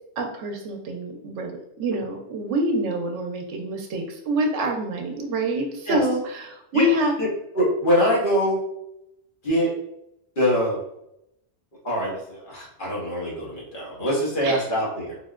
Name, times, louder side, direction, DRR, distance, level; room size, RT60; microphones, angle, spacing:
voice 1, 0.2-7.1 14.4-14.6, right 1 dB, 80° right, 3 dB, 0.9 m, -26 dB
voice 2, 7.5-8.6 9.4-9.7 10.4-10.8 11.8-15.2, equal, 45° left, -6 dB, 1.1 m, -23 dB
3.8 x 2.1 x 2.3 m, 0.82 s
omnidirectional pair, 1.2 m